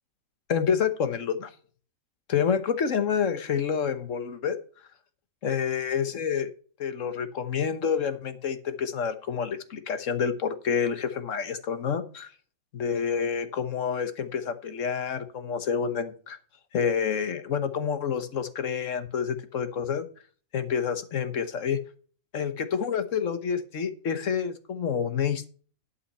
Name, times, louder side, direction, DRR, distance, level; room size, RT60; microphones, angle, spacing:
voice 1, 0.5-1.5 2.3-4.6 5.4-6.5 6.8-12.3 12.7-16.4 16.7-20.1 20.5-21.8 22.3-25.5, left 7 dB, 60° left, 10 dB, 1.4 m, -28 dB
11.5 x 5.7 x 5.5 m, 0.42 s
omnidirectional pair, 1.5 m